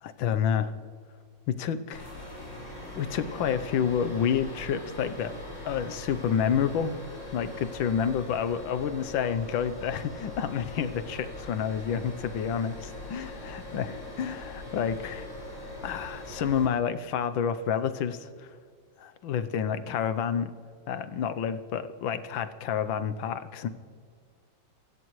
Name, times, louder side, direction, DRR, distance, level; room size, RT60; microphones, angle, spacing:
voice 1, 0.0-0.7 1.5-2.0 2.9-5.4 5.6-6.9 7.3-13.9 14.2-15.3 15.8-18.6 19.0-20.5 20.9-23.7, left 8 dB, 85° left, 11 dB, 1.6 m, -29 dB
sound 1, 1.9-16.7, left 1 dB, 45° left, 5.7 m, -41 dB
27.0 x 16.5 x 3.1 m, 2.1 s
omnidirectional pair, 2.1 m